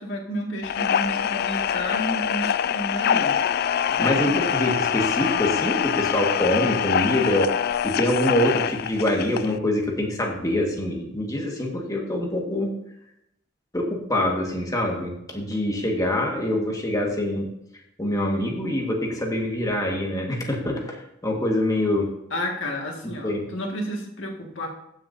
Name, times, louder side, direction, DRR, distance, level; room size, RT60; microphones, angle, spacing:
voice 1, 0.0-3.4 3.9-4.3 22.3-24.7, equal, 70° left, 0 dB, 2.0 m, -31 dB
sound 1, 0.6-9.6, left 8 dB, 50° left, 0.3 m, -24 dB
voice 2, 4.0-7.5 7.8-12.7 13.7-17.5 18.0-22.1 23.2-23.4, left 1 dB, 20° left, 0 dB, 1.7 m, -25 dB
15.0 x 6.5 x 2.7 m, 0.80 s
head